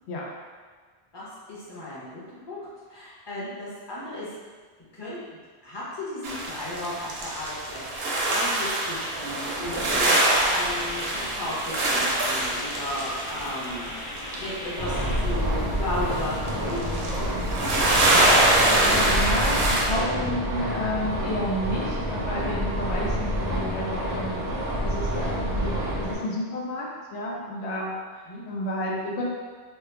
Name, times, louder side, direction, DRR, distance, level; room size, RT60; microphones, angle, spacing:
voice 1, 1.1-2.2 2.5-2.6 2.9-4.3 4.9-5.2 5.6-10.2 10.5-18.0 28.3-28.4, left 1 dB, 25° left, -9 dB, 0.9 m, -35 dB
sound 1, 6.2-14.4 15.4-15.5 15.7-19.9, right 1 dB, 70° right, 0.9 m, -24 dB
sound 2, 9.6-15.2, equal, 55° left, 1.2 m, -37 dB
sound 3, 14.8-26.1, equal, 50° right, 0.6 m, -28 dB
voice 2, 18.6-24.4 24.8-27.9 28.4-29.2, left 1 dB, 85° left, -3 dB, 0.9 m, -31 dB
3.1 x 2.2 x 3.3 m, 1.5 s
omnidirectional pair, 1.1 m